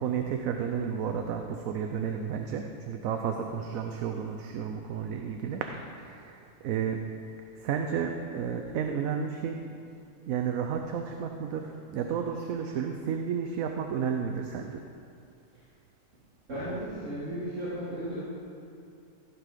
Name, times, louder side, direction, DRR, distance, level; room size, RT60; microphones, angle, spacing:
voice 1, 0.0-5.7 6.0-7.0 7.6-9.6 10.3-14.8, right 7 dB, 90° right, 4 dB, 1.1 m, -32 dB
voice 2, 16.5-18.2, right 1 dB, 70° right, -11 dB, 2.8 m, -35 dB
15.5 x 6.1 x 5.1 m, 2.5 s
omnidirectional pair, 1.4 m